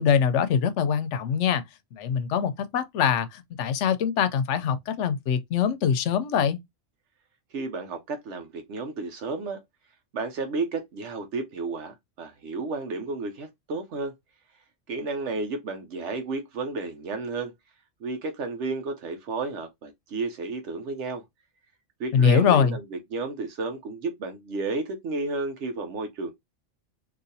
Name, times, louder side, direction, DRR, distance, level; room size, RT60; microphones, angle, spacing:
voice 1, 0.0-1.6 1.9-6.6 22.1-22.7, left 7 dB, 80° left, 0.9 m, -23 dB
voice 2, 7.5-9.6 10.1-14.1 14.9-17.5 18.0-21.2 22.0-26.3, right 3 dB, 75° right, 1.0 m, -32 dB
3.9 x 2.5 x 2.6 m
omnidirectional pair, 1.2 m